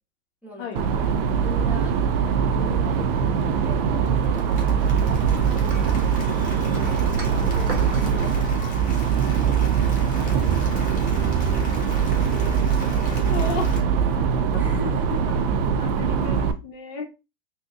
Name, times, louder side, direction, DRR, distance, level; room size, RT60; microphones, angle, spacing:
voice 1, 0.4-0.9 1.4-1.9 2.4-4.5 7.1-9.5 14.5-15.2, left 1 dB, 5° right, 1.1 m, -40 dB
sound 1, 0.8-16.5, right 7 dB, 55° right, 0.5 m, -22 dB
Applause, 4.1-13.8, left 3 dB, 20° left, 1.2 m, -41 dB
sound 2, 5.7-8.1, right 2 dB, 80° right, 1.3 m, -39 dB
voice 2, 13.3-13.7 15.3-17.1, left 4 dB, 45° left, 0.8 m, -34 dB
3.5 x 2.8 x 2.4 m
hypercardioid pair, 105°, 35 cm